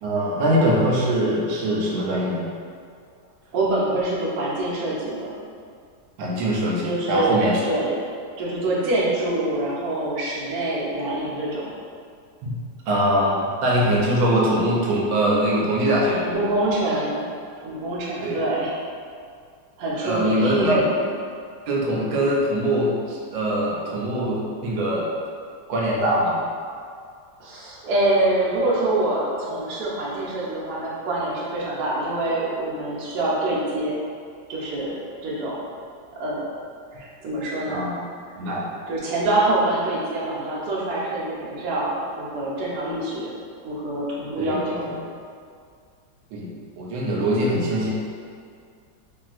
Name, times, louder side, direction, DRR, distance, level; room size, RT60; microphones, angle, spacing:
voice 1, 0.0-2.5 6.2-7.6 12.4-12.6 12.9-16.2 18.2-18.4 20.0-20.8 21.7-25.1 25.7-26.4 37.7-38.0 38.4-38.6 44.4-45.0 46.3-46.5 46.8-47.9, right 1 dB, 85° right, -4 dB, 1.3 m, -22 dB
voice 2, 3.5-5.3 6.8-8.0 8.4-11.7 16.2-17.2 17.6-18.8 19.8-20.9 27.4-34.0 34.5-35.0 35.2-35.6 36.2-36.4 36.9-37.9 38.9-43.3 43.6-45.0, right 2 dB, 65° right, -6 dB, 1.1 m, -25 dB
3.0 x 2.6 x 2.4 m, 2.2 s
omnidirectional pair, 2.0 m